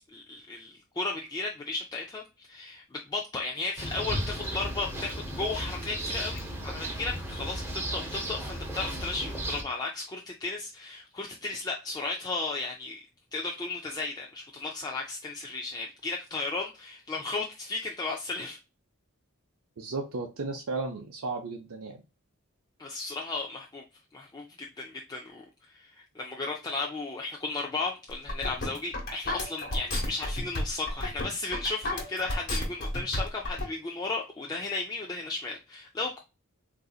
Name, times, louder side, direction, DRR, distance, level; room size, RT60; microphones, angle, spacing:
voice 1, 0.1-13.0 13.3-18.6 22.8-23.8 24.1-25.4 25.7-36.2, left 3 dB, 20° left, -1 dB, 0.3 m, -35 dB
sound 1, 3.8-9.6, right 1 dB, 10° right, 0.8 m, -35 dB
voice 2, 19.8-22.0, right 3 dB, 80° right, 1 dB, 0.6 m, -34 dB
sound 2, 28.1-33.6, left 1 dB, 50° left, 1.2 m, -32 dB
3.8 x 2.6 x 2.3 m, 0.29 s
head